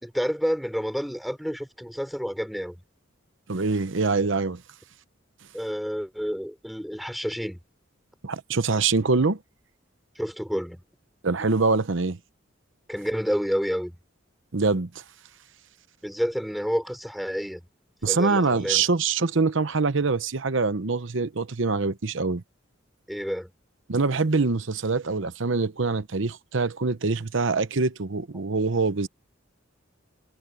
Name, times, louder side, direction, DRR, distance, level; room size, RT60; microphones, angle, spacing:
voice 1, 0.0-2.8 5.5-7.6 10.2-10.8 12.9-14.0 16.0-17.6 18.1-18.8 23.1-23.5, equal, ahead, 3.8 m, -29 dB
voice 2, 3.5-4.6 8.2-9.4 11.2-12.2 14.5-15.0 18.0-22.4 23.9-29.1, right 4 dB, 65° right, 0.9 m, -24 dB
head